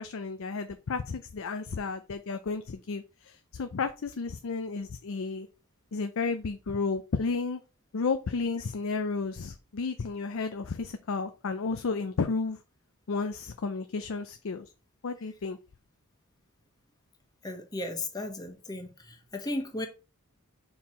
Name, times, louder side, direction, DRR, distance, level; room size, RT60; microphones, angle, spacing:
voice 1, 0.0-5.5 5.9-7.6 7.9-12.6 13.1-14.7 15.0-15.6, left 4 dB, 60° left, 0.5 m, -32 dB
voice 2, 17.4-19.9, left 1 dB, 15° left, 1.1 m, -35 dB
5.5 x 4.7 x 4.3 m
head